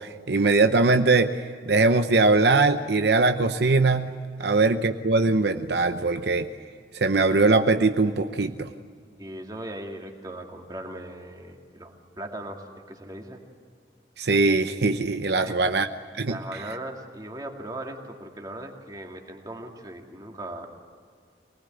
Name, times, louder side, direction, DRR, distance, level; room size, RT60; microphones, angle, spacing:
voice 1, 0.0-6.5 7.0-8.7 14.2-15.9 16.1-16.4, right 3 dB, 70° right, 7 dB, 0.8 m, -21 dB
voice 2, 9.2-13.4 15.4-15.6 16.3-20.7, right 1 dB, 20° right, 2 dB, 2.4 m, -38 dB
25.0 x 19.5 x 9.0 m, 2.1 s
head